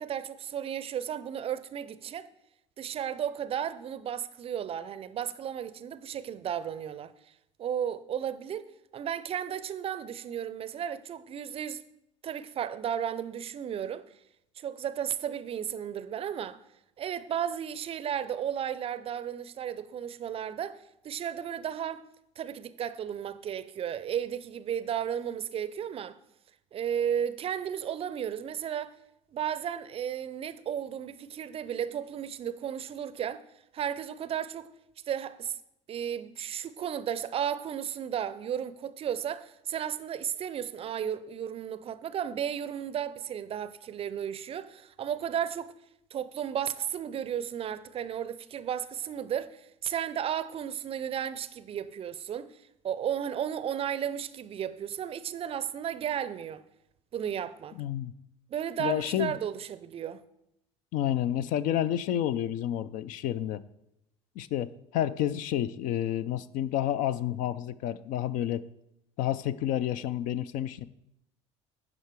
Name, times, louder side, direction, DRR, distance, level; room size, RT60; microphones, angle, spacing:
voice 1, 0.0-2.3 2.8-7.1 7.6-11.8 12.2-14.1 14.6-16.6 17.0-22.0 22.4-26.2 26.7-29.0 29.3-33.4 33.7-34.7 35.1-35.6 35.9-45.7 46.1-52.5 52.8-56.6 57.1-57.8 58.5-60.2, right 9 dB, 35° right, 0.5 m, -34 dB
voice 2, 57.8-58.1 58.8-59.3 60.9-63.6 64.4-68.7 69.2-70.9, left 11 dB, 55° left, 0.4 m, -30 dB
11.5 x 4.9 x 4.6 m
hypercardioid pair, 70°, 16 cm